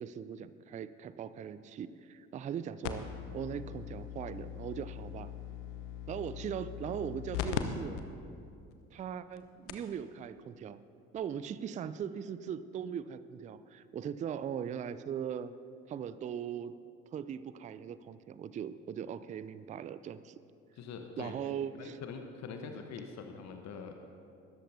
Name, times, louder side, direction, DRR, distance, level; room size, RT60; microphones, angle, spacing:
voice 1, 0.0-5.3 6.1-8.0 8.9-10.8 11.1-15.5 15.9-16.8 17.1-20.4 21.2-22.0 22.6-22.7, right 8 dB, 20° right, 14 dB, 0.4 m, -40 dB
sound 1, 2.8-7.6 8.0-8.1 8.7-8.8 9.4-9.5 9.7-9.9 11.2-11.3, left 11 dB, 65° left, 0.9 m, -40 dB
voice 2, 20.7-23.9, left 5 dB, 45° left, 5 dB, 1.1 m, -44 dB
20.0 x 13.0 x 2.7 m, 2.5 s
figure-of-eight pair, 50°, 39 cm